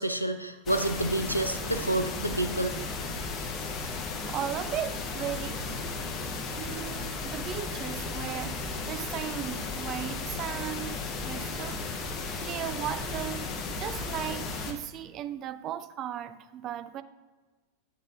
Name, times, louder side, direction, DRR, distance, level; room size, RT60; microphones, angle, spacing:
voice 1, 0.0-2.8, right 1 dB, 90° left, 0.4 m, -29 dB
sound 1, 0.7-14.7, left 3 dB, 30° left, 0.7 m, -35 dB
voice 2, 4.3-5.7 6.5-12.0 12.4-17.0, right 11 dB, 35° right, 0.3 m, -37 dB
8.7 x 7.4 x 2.4 m
figure-of-eight pair, 90°, 0 cm